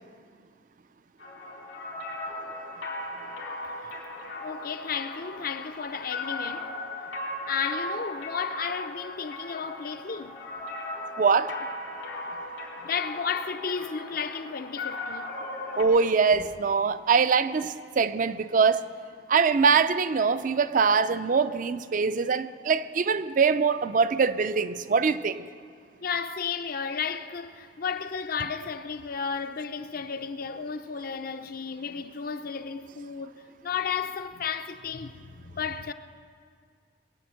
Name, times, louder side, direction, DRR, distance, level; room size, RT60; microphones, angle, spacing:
sound 1, 1.2-15.8, left 2 dB, 85° left, 3.3 m, -37 dB
voice 1, 4.4-6.7 7.5-10.4 12.8-15.3 16.3-16.5 26.0-33.3 33.6-35.9, left 6 dB, 50° left, 0.6 m, -33 dB
voice 2, 11.2-11.6 15.8-18.9 19.3-25.4, right 5 dB, 45° right, 0.4 m, -23 dB
21.0 x 8.6 x 7.6 m
head